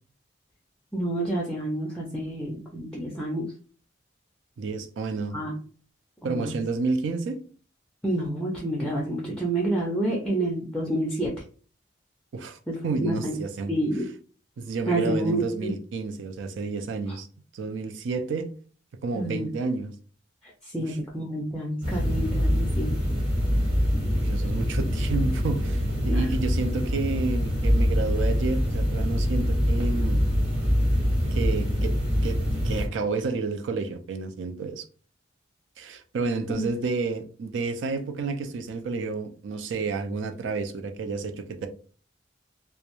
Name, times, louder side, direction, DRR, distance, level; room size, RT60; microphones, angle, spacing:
voice 1, 0.9-3.5 5.3-5.6 6.2-6.6 8.0-11.3 12.7-13.4 13.7-14.0 14.9-15.7 19.1-19.5 20.6-22.9 26.1-26.3 36.5-36.6, right 1 dB, 5° left, -2 dB, 0.4 m, -28 dB
voice 2, 4.6-5.4 6.2-7.4 12.3-13.8 14.6-17.3 17.5-18.5 19.0-19.9 20.8-21.0 24.1-30.2 31.3-32.4 32.6-34.8 35.8-41.7, right 4 dB, 80° right, 8 dB, 0.4 m, -30 dB
sound 1, 21.8-32.9, equal, 30° right, 1.0 m, -24 dB
2.3 x 2.1 x 2.9 m, 0.41 s
head